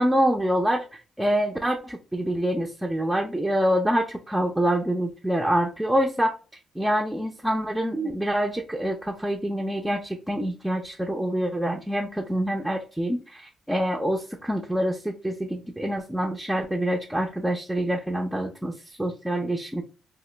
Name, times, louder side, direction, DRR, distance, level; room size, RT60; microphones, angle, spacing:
voice 1, 0.0-6.4 6.8-19.8, equal, 5° right, 1 dB, 0.4 m, -26 dB
2.9 x 2.2 x 3.2 m, 0.36 s
cardioid pair, 110°, 0 cm